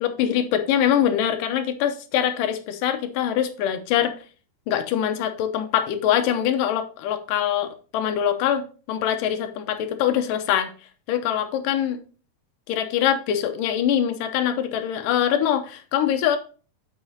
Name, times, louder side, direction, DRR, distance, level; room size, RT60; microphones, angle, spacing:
voice 1, 0.0-4.1 4.7-10.7 11.1-12.0 12.7-16.4, left 10 dB, 90° left, 2.4 m, -23 dB
7.8 x 4.8 x 4.0 m
omnidirectional pair, 3.8 m